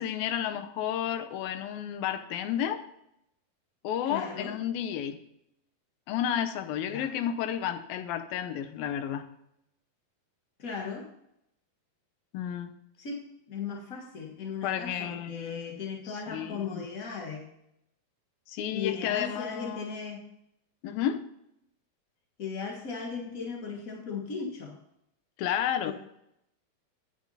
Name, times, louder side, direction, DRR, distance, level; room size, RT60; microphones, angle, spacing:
voice 1, 0.0-2.8 3.8-5.2 6.1-9.3 12.3-12.7 14.6-15.8 16.3-16.8 18.5-20.1 20.8-21.2 25.4-25.9, left 10 dB, 85° left, 9 dB, 2.7 m, -32 dB
voice 2, 4.0-4.5 6.7-7.1 10.6-11.1 13.0-17.5 18.7-20.2 22.4-24.8 25.8-25.9, left 5 dB, 55° left, 0 dB, 0.9 m, -37 dB
12.0 x 9.5 x 4.2 m, 0.79 s
omnidirectional pair, 4.1 m